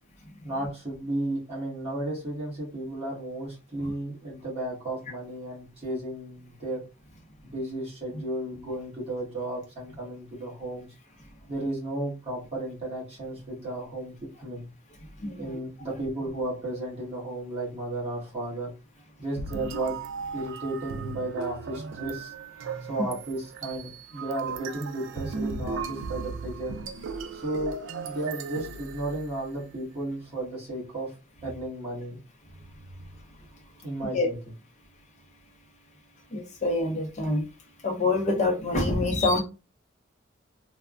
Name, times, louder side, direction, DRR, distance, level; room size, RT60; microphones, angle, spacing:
voice 1, 0.4-6.8 7.5-10.9 11.5-14.6 15.3-18.7 19.2-20.0 20.3-22.3 22.8-26.8 27.3-27.8 28.0-31.1 31.4-32.2 33.8-34.4, right 1 dB, 30° right, 1.3 m, -34 dB
voice 2, 15.2-15.6 34.1-34.3 36.3-37.4 37.8-39.4, left 2 dB, 35° left, 0.6 m, -26 dB
sound 1, 19.4-29.7, right 5 dB, 65° right, 0.3 m, -37 dB
3.3 x 2.1 x 2.4 m
head